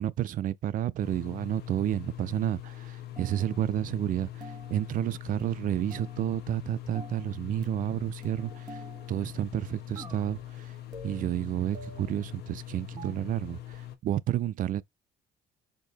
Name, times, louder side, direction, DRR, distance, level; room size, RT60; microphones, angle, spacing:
voice 1, 0.0-8.8 9.1-10.7 11.0-14.8, right 11 dB, 55° right, 0.4 m, -31 dB
sound 1, 1.0-13.9, left 12 dB, 70° left, 1.2 m, -43 dB
sound 2, 3.2-3.7 4.4-5.0 5.4-6.4 6.9-7.4 7.6-9.3 10.0-10.6 10.9-12.3 13.0-13.1, right 2 dB, 25° right, 1.7 m, -48 dB
4.6 x 2.8 x 4.0 m
cardioid pair, 110°, 17 cm